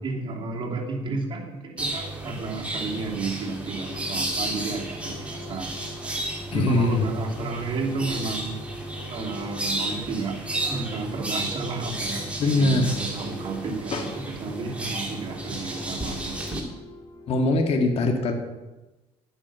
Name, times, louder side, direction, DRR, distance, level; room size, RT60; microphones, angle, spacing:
voice 1, 0.0-8.8 9.1-10.4 10.7-16.6 17.3-17.4, right 4 dB, 45° right, -1 dB, 2.9 m, -32 dB
sound 1, 1.8-16.6, right 1 dB, 10° right, 2.8 m, -33 dB
sound 2, 3.8-17.6, left 2 dB, 30° left, 2.1 m, -44 dB
voice 2, 6.5-7.0 12.4-12.9 13.9-14.0 17.3-18.3, left 2 dB, 55° left, 3 dB, 2.2 m, -22 dB
11.5 x 8.8 x 6.3 m, 1.1 s
cardioid pair, 95°, 12 cm